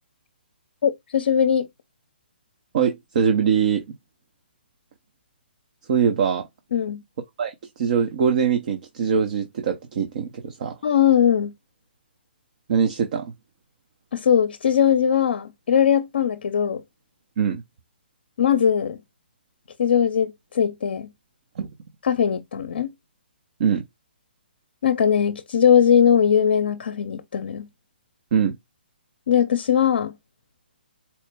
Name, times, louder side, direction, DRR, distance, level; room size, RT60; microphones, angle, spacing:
voice 1, 0.8-1.7 6.7-7.0 10.8-11.5 14.1-16.8 18.4-19.0 19.8-21.1 22.0-22.9 24.8-27.7 29.3-30.1, left 8 dB, 65° left, 0.5 m, -20 dB
voice 2, 2.7-3.8 5.9-6.5 7.4-10.8 12.7-13.3 17.4-17.6 21.6-21.7 23.6-23.8 28.3-28.5, right 7 dB, 50° right, 0.6 m, -22 dB
4.3 x 2.1 x 3.3 m
hypercardioid pair, 140°, 6 cm